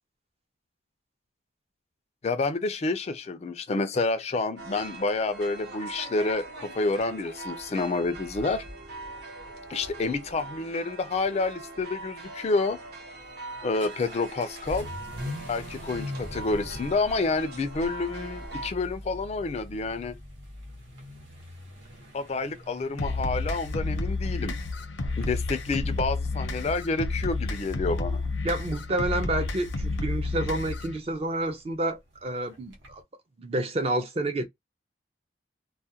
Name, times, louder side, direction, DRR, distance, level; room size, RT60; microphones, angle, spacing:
voice 1, 2.2-8.6 9.7-12.8 13.6-14.9 15.5-20.1 22.1-24.6 25.2-28.2, left 3 dB, 35° left, 0.3 m, -29 dB
sound 1, 4.6-18.7, right 2 dB, 55° right, 0.8 m, -42 dB
Vehicle / Accelerating revving vroom, 13.2-33.0, left 1 dB, 85° right, 0.9 m, -44 dB
sound 2, 23.0-31.0, left 2 dB, 85° left, 0.6 m, -30 dB
voice 2, 28.4-33.0 33.4-34.4, right 1 dB, 30° right, 0.4 m, -29 dB
2.3 x 2.1 x 2.7 m
head